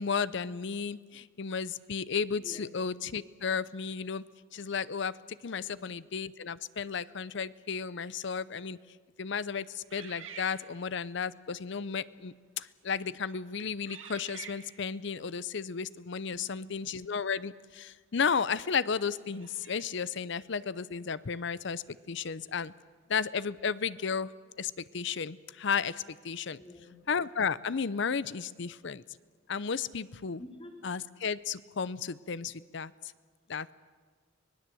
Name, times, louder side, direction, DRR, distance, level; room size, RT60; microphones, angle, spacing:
voice 1, 0.0-4.2 4.5-5.2 5.4-8.8 9.2-22.7 23.1-24.3 24.6-26.6 27.1-29.0 29.5-30.4 30.8-32.9 33.5-33.7, left 6 dB, 65° left, 18 dB, 0.6 m, -33 dB
voice 2, 5.6-6.0 16.3-16.7 26.6-27.0 30.4-30.8, left 1 dB, 30° left, 1 dB, 3.4 m, -49 dB
sound 1, 9.9-11.1 11.9-12.1 12.8-13.1 13.9-15.0 17.7-17.8 19.3-20.2, right 7 dB, 80° right, 2.1 m, -49 dB
24.5 x 19.5 x 7.8 m, 1.5 s
head